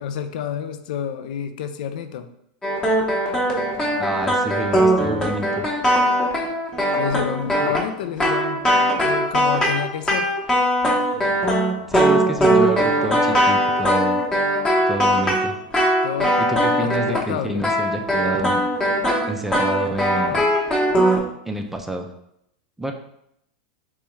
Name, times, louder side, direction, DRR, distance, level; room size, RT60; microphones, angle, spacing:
voice 1, 0.0-2.3 7.0-10.3 16.0-16.4 16.8-17.6 20.0-20.1, left 8 dB, 70° left, 8 dB, 0.4 m, -29 dB
sound 1, 2.6-17.3 17.6-21.2, equal, 15° left, 0.8 m, -20 dB
voice 2, 4.0-5.7 11.9-14.2 14.9-15.6 16.4-18.6 19.3-20.4 21.4-22.1 22.8-22.9, right 1 dB, 5° right, 4 dB, 0.4 m, -28 dB
3.4 x 3.0 x 3.1 m, 0.76 s
supercardioid pair, 130°, 5 cm